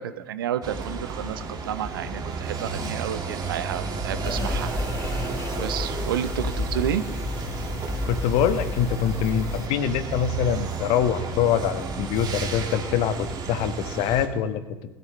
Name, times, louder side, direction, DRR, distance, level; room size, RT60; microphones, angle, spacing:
voice 1, 0.0-4.7 5.6-7.0, right 10 dB, 75° right, 14 dB, 0.7 m, -30 dB
sound 1, 0.6-14.3, right 4 dB, 35° right, 2.0 m, -32 dB
sound 2, 4.2-9.7, left 3 dB, 20° left, 1.2 m, -32 dB
voice 2, 8.1-14.6, left 9 dB, 55° left, 10 dB, 1.1 m, -24 dB
20.0 x 13.5 x 3.2 m, 1.1 s
figure-of-eight pair, 75°, 12 cm